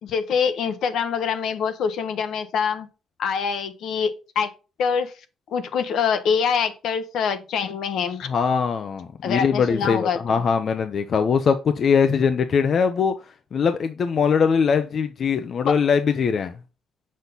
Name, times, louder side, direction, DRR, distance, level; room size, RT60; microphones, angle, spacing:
voice 1, 0.0-2.9 3.2-4.5 4.8-5.1 5.5-8.3 9.2-10.4 15.7-15.8, left 6 dB, 75° left, 1.1 m, -25 dB
voice 2, 8.2-13.1 13.5-16.5, left 6 dB, 55° left, 0.7 m, -21 dB
6.4 x 5.3 x 4.0 m
cardioid pair, 90°, 0 cm